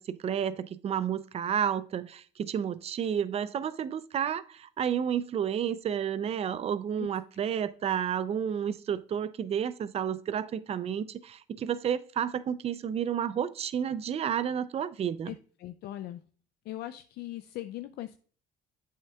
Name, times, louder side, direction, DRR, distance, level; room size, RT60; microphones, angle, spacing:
voice 1, 0.0-15.3, right 8 dB, 35° right, 0.5 m, -31 dB
voice 2, 15.3-16.2 16.7-18.2, left 14 dB, 70° left, 0.4 m, -40 dB
8.2 x 6.4 x 2.3 m
cardioid pair, 110°, 17 cm